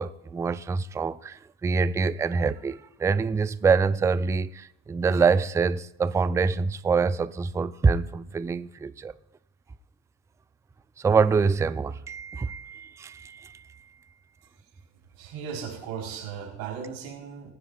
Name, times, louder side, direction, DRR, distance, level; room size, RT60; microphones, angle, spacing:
voice 1, 0.0-9.2 11.0-13.9, right 5 dB, 10° right, 0.3 m, -25 dB
voice 2, 15.2-17.5, right 7 dB, 65° right, 3.8 m, -36 dB
19.5 x 9.8 x 2.3 m
hypercardioid pair, 75°, 38 cm